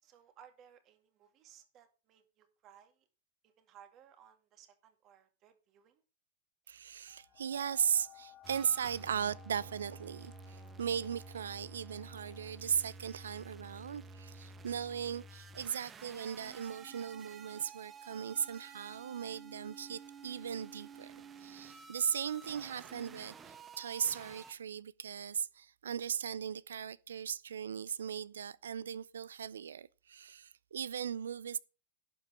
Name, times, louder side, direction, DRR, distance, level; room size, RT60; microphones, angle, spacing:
voice 1, 0.0-3.1 3.4-6.0, right 9 dB, 35° right, 2.2 m, -61 dB
voice 2, 6.7-31.6, right 8 dB, 90° right, 0.5 m, -38 dB
sound 1, 7.1-16.3 17.0-17.1, left 13 dB, 35° left, 1.6 m, -62 dB
sound 2, 8.4-24.5, right 4 dB, 20° right, 1.0 m, -52 dB
11.5 x 5.5 x 6.4 m
hypercardioid pair, 120°, 0 cm